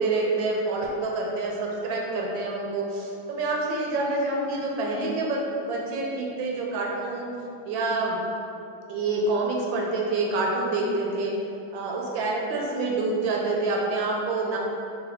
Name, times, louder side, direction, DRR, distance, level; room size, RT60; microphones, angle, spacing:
voice 1, 0.0-7.3 7.7-8.2 8.9-11.3 11.7-14.6, right 2 dB, 75° right, -1 dB, 1.3 m, -27 dB
4.1 x 2.7 x 4.6 m, 2.7 s
omnidirectional pair, 2.2 m